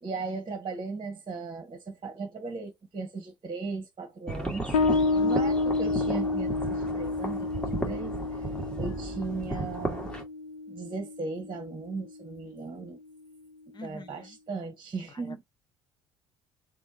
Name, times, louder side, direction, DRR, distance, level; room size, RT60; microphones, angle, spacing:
voice 1, 0.0-4.7 5.2-8.2 8.8-10.1 10.7-13.0 13.8-15.4, right 4 dB, 30° right, 1.4 m, -37 dB
sound 1, 4.3-10.2, right 1 dB, 5° left, 1.7 m, -35 dB
Bass guitar, 4.7-11.9, left 3 dB, 85° left, 0.4 m, -30 dB
voice 2, 5.1-5.5 13.7-14.4 15.1-15.4, left 3 dB, 25° left, 0.9 m, -45 dB
3.4 x 3.1 x 2.7 m
hypercardioid pair, 55°, 17 cm